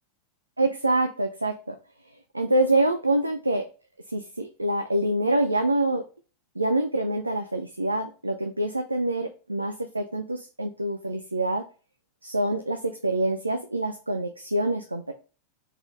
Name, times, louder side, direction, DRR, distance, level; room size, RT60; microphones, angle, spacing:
voice 1, 0.6-1.7 2.3-3.7 4.1-6.0 6.6-11.6 12.2-15.1, right 1 dB, 85° right, 7 dB, 0.4 m, -26 dB
4.0 x 3.6 x 3.6 m, 0.35 s
figure-of-eight pair, 90°, 0 cm